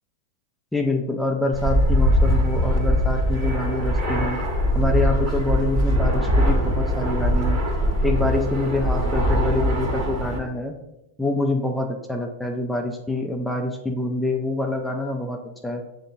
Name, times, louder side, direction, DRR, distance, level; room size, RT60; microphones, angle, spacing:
voice 1, 0.7-4.4 4.7-7.6 8.0-10.7 11.2-15.8, left 2 dB, 5° left, 2 dB, 0.4 m, -26 dB
Fixed-wing aircraft airplane, 1.5-10.4, equal, 35° right, 1.0 m, -21 dB
6.5 x 2.6 x 2.6 m, 0.94 s
hypercardioid pair, 105°, 0 cm